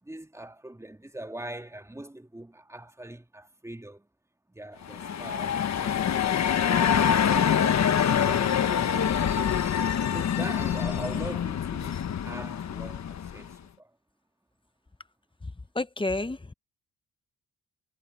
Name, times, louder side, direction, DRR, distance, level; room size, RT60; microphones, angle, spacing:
voice 1, 0.0-4.1 4.5-6.2 6.7-7.7 8.0-12.0 12.2-13.9, right 1 dB, 10° right, 2.3 m, -42 dB
sound 1, 4.8-13.5, left 8 dB, 55° left, 1.4 m, -25 dB
voice 2, 15.7-16.5, left 2 dB, 15° left, 1.2 m, -30 dB
cardioid pair, 65°, 33 cm